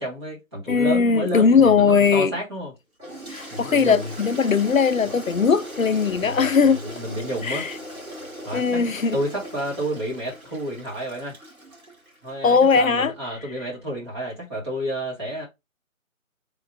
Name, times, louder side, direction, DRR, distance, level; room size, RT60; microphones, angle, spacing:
voice 1, 0.0-2.7 3.5-4.1 6.2-6.4 6.8-7.7 8.4-8.8 9.1-11.3 12.2-15.4, right 1 dB, 20° right, 1.6 m, -30 dB
voice 2, 0.7-2.3 3.3-6.8 7.4-7.7 8.5-9.2 12.4-13.1, left 5 dB, 70° left, 0.6 m, -19 dB
Toilet flush, 3.0-12.3, right 1 dB, 85° right, 2.0 m, -39 dB
5.3 x 3.8 x 2.4 m
figure-of-eight pair, 155°, 41 cm